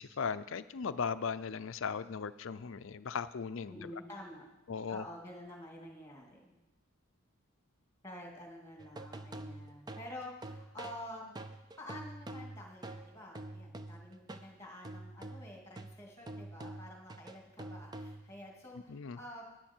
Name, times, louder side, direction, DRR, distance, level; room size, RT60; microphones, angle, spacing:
voice 1, 0.0-3.9 4.7-5.0 18.9-19.2, left 6 dB, 60° left, 14 dB, 0.5 m, -37 dB
voice 2, 3.7-4.5 4.9-6.6 8.0-11.5 11.8-19.4, left 1 dB, 10° left, 0 dB, 2.4 m, -49 dB
sound 1, 8.8-14.5 14.8-18.4, right 2 dB, 20° right, 0.5 m, -46 dB
12.0 x 10.5 x 4.5 m, 0.96 s
head